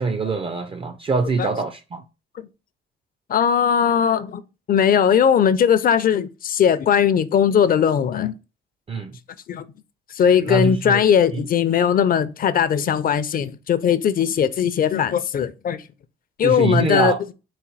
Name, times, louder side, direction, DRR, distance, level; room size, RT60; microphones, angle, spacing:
voice 1, 0.0-2.0 8.9-9.2 10.4-11.0 11.3-11.5 16.4-17.2, right 4 dB, 25° right, 0.4 m, -24 dB
voice 2, 3.3-4.4 4.7-8.4 9.5-9.6 10.1-15.8 16.4-17.1, left 8 dB, 45° left, 0.4 m, -19 dB
4.2 x 2.2 x 3.9 m
cardioid pair, 90°, 20 cm